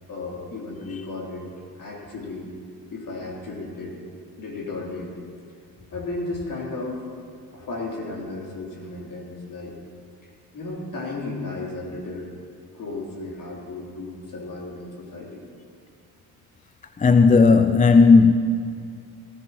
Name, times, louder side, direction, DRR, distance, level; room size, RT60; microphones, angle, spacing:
voice 1, 0.1-2.5 2.9-4.0 4.4-5.1 5.9-9.8 10.5-12.3 12.7-15.4, left 2 dB, 50° left, 3.6 m, -34 dB
voice 2, 17.0-18.3, left 4 dB, 20° left, 0.5 m, -14 dB
17.5 x 14.0 x 3.0 m
supercardioid pair, 70°, 43 cm